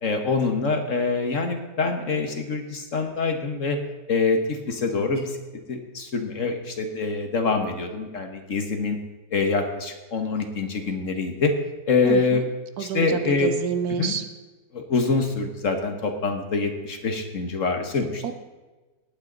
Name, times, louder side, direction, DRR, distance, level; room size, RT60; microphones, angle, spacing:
voice 1, 0.0-3.8 4.1-5.3 5.7-9.0 9.3-11.5 11.9-12.4 12.8-13.5 14.0-14.1 14.7-18.2, left 4 dB, 50° left, 5 dB, 1.6 m, -25 dB
voice 2, 12.0-12.4 12.8-14.2 18.2-18.3, right 7 dB, 65° right, 9 dB, 1.2 m, -28 dB
19.0 x 9.0 x 4.0 m, 1.2 s
omnidirectional pair, 1.8 m